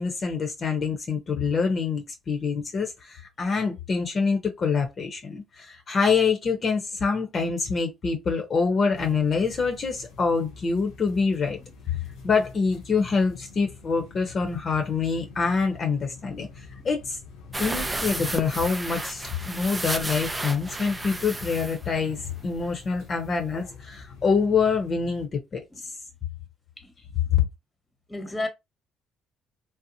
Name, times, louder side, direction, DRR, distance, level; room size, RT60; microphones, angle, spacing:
voice 1, 0.0-11.6 11.9-17.2 17.6-25.9 27.3-27.5, left 5 dB, 45° left, 0.8 m, -26 dB
sound 1, 8.9-25.3, left 4 dB, 85° left, 0.8 m, -46 dB
sound 2, 17.5-22.8 23.1-23.2 23.5-23.6, right 2 dB, 15° right, 0.4 m, -33 dB
voice 2, 28.1-28.5, left 2 dB, 15° left, 1.0 m, -32 dB
2.8 x 2.0 x 2.6 m
supercardioid pair, 75°, 0 cm